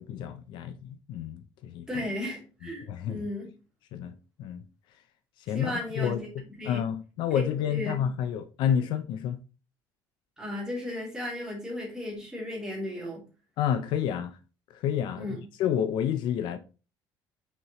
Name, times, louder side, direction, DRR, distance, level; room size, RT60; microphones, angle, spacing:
voice 1, 0.0-2.0 2.9-3.2 3.9-4.1 4.4-4.6 5.5-9.4 13.6-14.4 14.7-16.6, left 9 dB, 70° left, 0.7 m, -30 dB
voice 2, 1.9-3.5 5.5-6.3 6.6-6.8 7.3-7.4 7.7-7.9 10.4-13.2 15.2-15.4, left 1 dB, 10° right, 3.2 m, -35 dB
6.0 x 5.7 x 3.1 m
cardioid pair, 160°, 8 cm